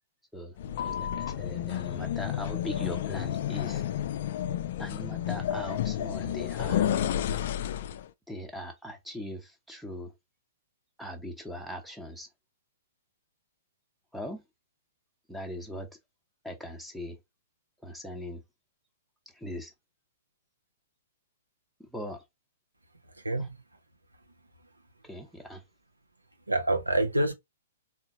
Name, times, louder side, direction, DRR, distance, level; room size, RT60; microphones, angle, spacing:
sound 1, 0.6-8.1, left 10 dB, 50° left, 0.3 m, -31 dB
voice 1, 0.8-3.8 4.8-6.9 8.3-10.1 11.0-12.3 14.1-14.4 15.3-16.0 16.4-17.2 17.8-18.4 19.3-19.7 21.8-22.2 23.4-23.5 25.0-25.6, left 1 dB, ahead, 0.8 m, -40 dB
voice 2, 26.5-27.3, right 1 dB, 85° right, 0.7 m, -26 dB
3.8 x 2.5 x 2.5 m
figure-of-eight pair, 115°, 0 cm